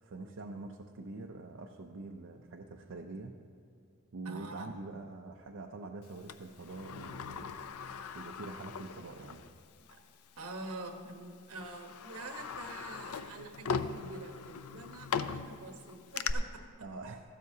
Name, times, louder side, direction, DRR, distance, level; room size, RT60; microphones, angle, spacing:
voice 1, 0.0-3.3 4.1-7.6 8.1-9.4 16.8-17.2, right 3 dB, 60° right, 1 dB, 0.6 m, -45 dB
voice 2, 4.2-4.7 9.9-10.0 10.4-16.6, right 2 dB, 75° right, 4 dB, 1.2 m, -46 dB
Sliding door, 6.3-9.5 9.9-10.0 10.9-11.1 11.6-16.3, left 6 dB, 85° left, 0.5 m, -39 dB
15.0 x 12.5 x 2.8 m, 2.5 s
head